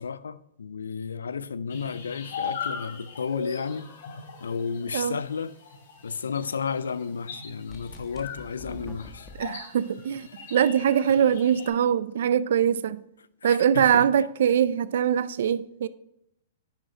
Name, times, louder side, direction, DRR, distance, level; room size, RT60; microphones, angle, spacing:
voice 1, 0.0-3.9 4.4-5.5 6.0-9.3 13.4-14.1, left 6 dB, 85° left, 0.4 m, -32 dB
sound 1, 1.7-11.7, left 6 dB, 65° left, 2.9 m, -40 dB
sound 2, 7.7-9.4, left 1 dB, 5° left, 1.4 m, -44 dB
voice 2, 9.4-13.0 13.4-15.9, right 9 dB, 65° right, 0.4 m, -23 dB
9.4 x 6.3 x 3.9 m
hypercardioid pair, 120°, 0 cm